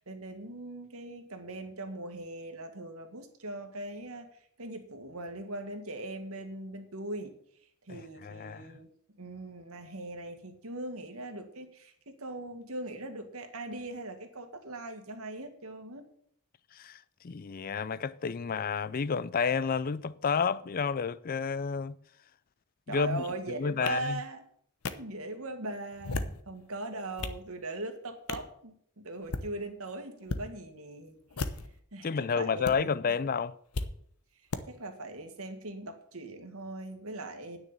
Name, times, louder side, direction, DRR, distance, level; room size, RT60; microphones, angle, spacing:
voice 1, 0.0-4.3 4.6-7.4 7.9-16.1 22.9-24.4 24.9-31.2 31.9-32.9 34.7-37.6, right 2 dB, 75° right, 1.9 m, -40 dB
voice 2, 7.9-8.7 16.7-22.0 22.9-24.2 32.0-33.6, left 5 dB, 40° left, 0.4 m, -31 dB
sound 1, 23.9-24.0 24.8-24.9 25.9-26.4 26.9-27.4 28.3-28.5 29.2-29.5 30.2-30.4 31.3-31.8 32.6-32.7 33.7-33.9 34.5-34.6, left 3 dB, 90° left, 0.9 m, -34 dB
9.7 x 6.4 x 8.6 m
head